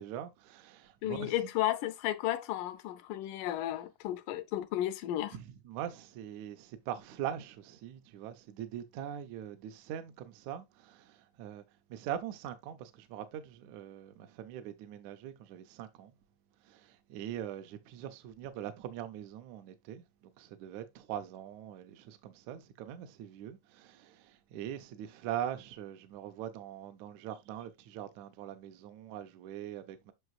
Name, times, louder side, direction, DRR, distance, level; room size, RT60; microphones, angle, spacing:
voice 1, 0.0-1.3 5.3-11.6 11.9-16.1 16.6-20.0 20.4-30.1, right 10 dB, 75° right, 1.7 m, -42 dB
voice 2, 1.0-5.4, left 14 dB, 80° left, 2.0 m, -33 dB
7.9 x 5.6 x 2.3 m
omnidirectional pair, 3.9 m